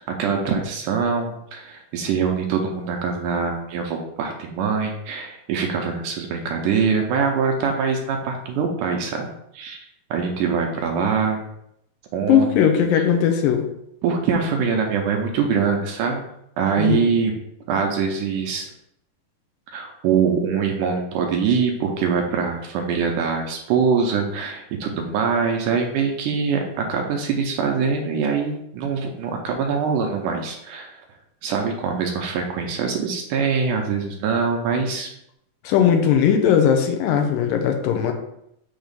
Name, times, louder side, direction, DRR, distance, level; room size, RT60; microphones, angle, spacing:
voice 1, 0.1-9.9 10.1-11.5 12.1-12.7 12.9-13.0 14.0-16.3 16.6-17.3 17.7-18.7 19.7-31.0 31.4-35.1, right 5 dB, 75° right, 2 dB, 2.1 m, -23 dB
voice 2, 12.3-13.6 16.8-17.0 35.6-38.1, left 8 dB, 80° left, 5 dB, 2.3 m, -18 dB
6.3 x 3.0 x 5.2 m, 0.77 s
omnidirectional pair, 4.0 m